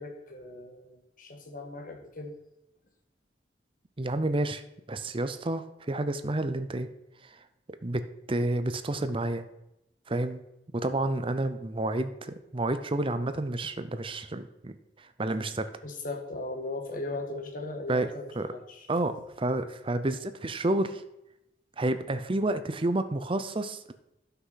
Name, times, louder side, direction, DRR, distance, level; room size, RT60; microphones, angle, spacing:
voice 1, 0.0-2.4 15.8-18.9, left 2 dB, 50° left, 3 dB, 1.7 m, -38 dB
voice 2, 4.0-4.6 4.9-6.9 7.8-9.4 10.1-10.4 10.7-15.7 17.9-18.5 18.9-21.0 21.8-23.9, right 2 dB, 30° right, 11 dB, 0.7 m, -30 dB
11.5 x 6.0 x 5.7 m, 0.88 s
head